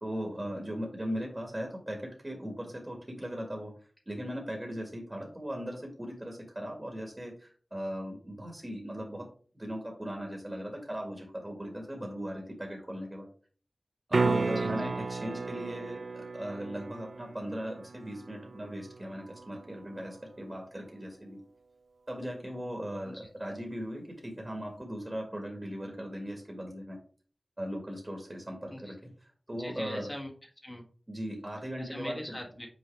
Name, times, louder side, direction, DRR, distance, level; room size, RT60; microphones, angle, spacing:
voice 1, 0.0-3.7 4.1-9.3 9.5-13.3 14.1-21.4 22.1-27.0 27.6-28.9 29.5-30.0 31.1-32.2, equal, 20° right, 1 dB, 1.9 m, -38 dB
sound 1, 14.1-20.1 24.8-24.9, right 3 dB, 65° right, 0.5 m, -34 dB
voice 2, 14.4-14.9 23.0-23.3 28.7-28.9 29.5-30.8 31.8-32.7, left 1 dB, 20° left, 0 dB, 1.6 m, -42 dB
6.3 x 4.6 x 3.4 m, 0.43 s
wide cardioid pair, 80°, 0 cm